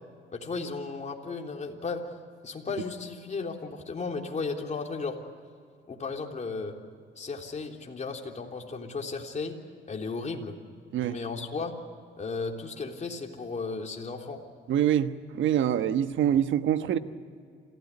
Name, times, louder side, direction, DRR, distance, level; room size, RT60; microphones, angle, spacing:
voice 1, 0.3-2.1 2.4-5.2 5.9-6.7 7.2-9.6 9.9-10.6 11.0-11.7 12.2-14.4, left 4 dB, 35° left, 1 dB, 3.5 m, -35 dB
voice 2, 14.7-17.0, right 10 dB, 75° right, 10 dB, 1.2 m, -25 dB
27.5 x 17.0 x 9.7 m, 2.2 s
cardioid pair, 90°, 20 cm